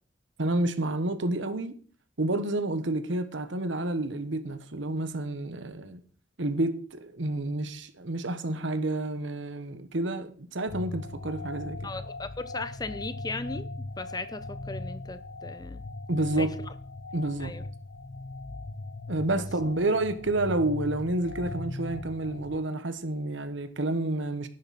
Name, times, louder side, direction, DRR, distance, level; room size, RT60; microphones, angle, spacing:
voice 1, 0.4-1.7 2.2-6.0 6.4-11.9 16.1-16.6 17.1-17.5 19.1-24.5, right 2 dB, 75° right, 1.2 m, -29 dB
sound 1, 10.7-22.6, left 2 dB, 70° left, 0.7 m, -39 dB
voice 2, 11.8-15.8 16.4-16.5 17.4-17.6 19.3-19.5, left 3 dB, 20° left, 0.8 m, -37 dB
11.0 x 10.5 x 4.2 m
head